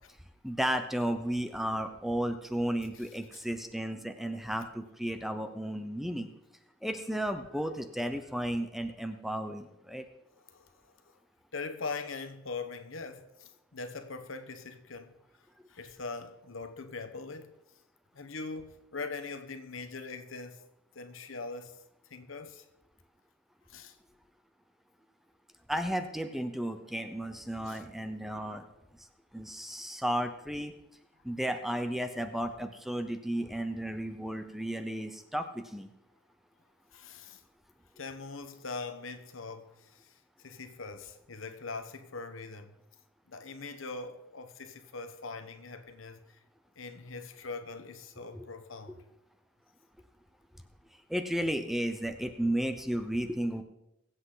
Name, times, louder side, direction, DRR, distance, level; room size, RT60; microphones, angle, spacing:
voice 1, 0.4-6.3 6.8-10.1 25.7-28.7 29.3-30.7 31.2-35.9 48.3-48.5 51.1-53.6, equal, ahead, 0.7 m, -33 dB
voice 2, 10.5-11.2 11.5-15.2 15.7-17.5 18.1-20.6 20.9-21.8 22.1-22.7 23.7-23.9 27.6-27.8 36.9-37.4 38.0-42.8 43.3-46.4 46.8-49.0, left 4 dB, 80° left, 1.1 m, -42 dB
22.0 x 8.2 x 3.9 m
head